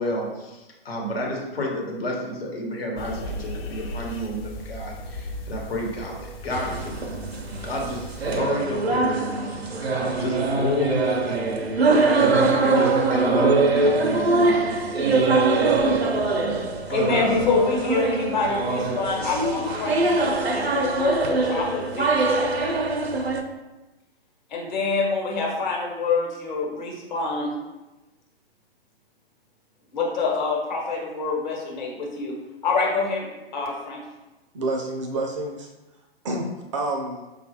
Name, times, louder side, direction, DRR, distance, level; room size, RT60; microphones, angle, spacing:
voice 1, 0.0-7.1 7.6-16.6 16.9-17.1, left 1 dB, 75° left, -2 dB, 1.1 m, -31 dB
sound 1, 3.0-8.4, equal, 25° left, 0.4 m, -36 dB
sound 2, 6.5-23.4, right 3 dB, 90° right, 0.6 m, -23 dB
voice 2, 16.9-22.4 24.5-27.5 29.9-32.3 32.6-34.0, left 4 dB, 50° left, -2 dB, 1.1 m, -26 dB
voice 3, 34.5-35.7 36.2-37.2, right 2 dB, 35° right, 3 dB, 0.4 m, -28 dB
4.9 x 2.4 x 2.8 m, 1.1 s
figure-of-eight pair, 120°, 30 cm